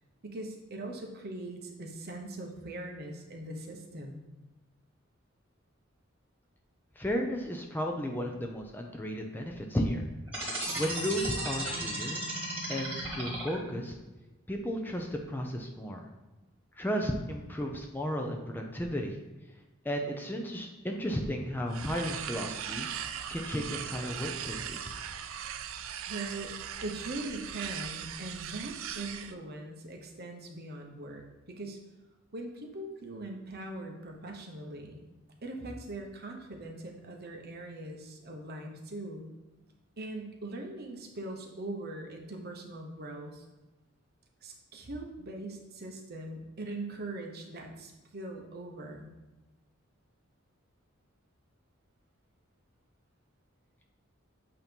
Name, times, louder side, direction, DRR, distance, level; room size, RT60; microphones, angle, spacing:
voice 1, 0.2-4.2 26.1-26.5 26.8-31.8 32.3-35.1 35.4-39.3 40.0-43.4 44.4-49.1, right 2 dB, 50° right, 2 dB, 0.9 m, -41 dB
voice 2, 7.0-10.0 10.8-12.2 12.7-13.9 14.5-16.1 16.8-19.2 19.8-22.9 23.3-24.9, equal, 10° left, 1 dB, 0.5 m, -34 dB
sound 1, 10.3-13.8, right 1 dB, 10° right, 2.2 m, -35 dB
sound 2, 21.7-29.3, right 9 dB, 70° right, 0.4 m, -39 dB
8.2 x 2.9 x 5.3 m, 1.1 s
head